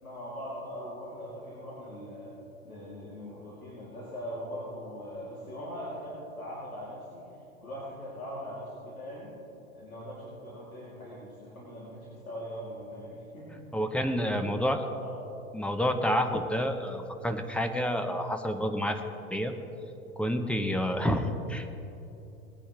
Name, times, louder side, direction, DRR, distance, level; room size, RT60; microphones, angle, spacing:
voice 1, 0.0-2.3 2.6-7.3 7.6-9.3 9.7-13.8 14.2-15.1, equal, 85° left, -8 dB, 3.0 m, -41 dB
voice 2, 13.7-14.9 15.5-19.0 19.3-19.5 20.2-21.8, equal, 5° left, 6 dB, 0.7 m, -29 dB
20.0 x 9.9 x 3.3 m, 2.9 s
figure-of-eight pair, 100°, 42 cm